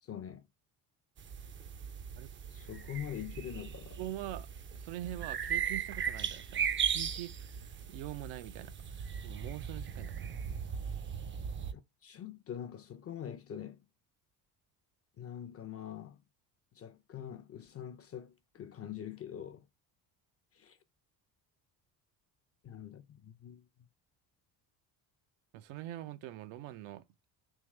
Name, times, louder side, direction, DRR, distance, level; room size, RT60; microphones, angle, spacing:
voice 1, 0.0-0.5 2.5-4.0 11.7-13.9 15.2-16.2 16.7-19.7 20.5-20.8 22.6-23.7, left 9 dB, 30° left, 0.4 m, -44 dB
sound 1, 1.2-11.7, right 7 dB, 25° right, 0.4 m, -38 dB
voice 2, 4.0-4.5 4.7-7.6 7.9-8.7 9.2-10.4 25.5-27.0, right 13 dB, 80° right, 0.6 m, -43 dB
3.7 x 2.8 x 3.1 m
supercardioid pair, 80°, 48 cm